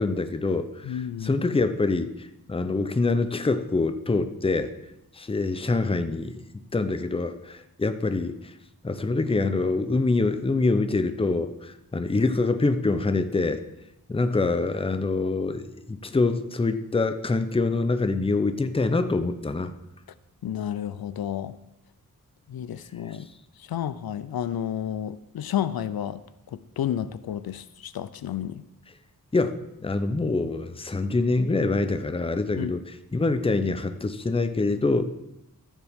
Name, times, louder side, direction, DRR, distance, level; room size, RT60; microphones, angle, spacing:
voice 1, 0.0-4.7 5.1-6.4 6.7-8.5 8.8-13.6 14.1-19.7 23.1-23.2 29.3-35.1, left 3 dB, 15° left, 10 dB, 0.6 m, -25 dB
voice 2, 0.8-1.3 20.4-21.6 22.5-23.3 23.6-26.2 26.5-28.6 32.6-32.7, left 10 dB, 85° left, 15 dB, 0.5 m, -31 dB
14.0 x 7.3 x 3.6 m, 0.86 s
wide cardioid pair, 120°, 36 cm